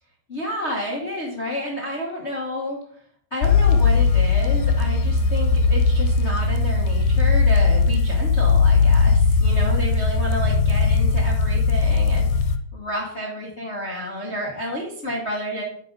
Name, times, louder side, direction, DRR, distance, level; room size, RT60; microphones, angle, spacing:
voice 1, 0.3-2.8 3.3-12.4 12.7-15.6, left 1 dB, 45° left, -2 dB, 0.8 m, -30 dB
sound 1, 3.4-12.6, left 4 dB, 85° left, 2.1 m, -18 dB
9.1 x 4.6 x 5.2 m, 0.64 s
omnidirectional pair, 3.4 m